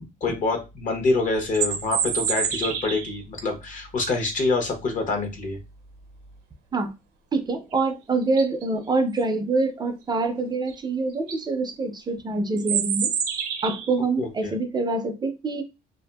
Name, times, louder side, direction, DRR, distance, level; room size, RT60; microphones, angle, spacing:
voice 1, 0.2-5.6 14.2-14.5, left 3 dB, 50° left, 0.9 m, -26 dB
sound 1, 1.4-3.2 7.7-7.8 8.2-8.6 10.7-10.8 11.1-11.4 12.6-14.0, right 8 dB, 65° right, 0.7 m, -27 dB
voice 2, 7.3-13.1 13.6-15.6, right 3 dB, 25° right, 0.4 m, -25 dB
2.6 x 2.5 x 2.2 m
cardioid pair, 110°, 17 cm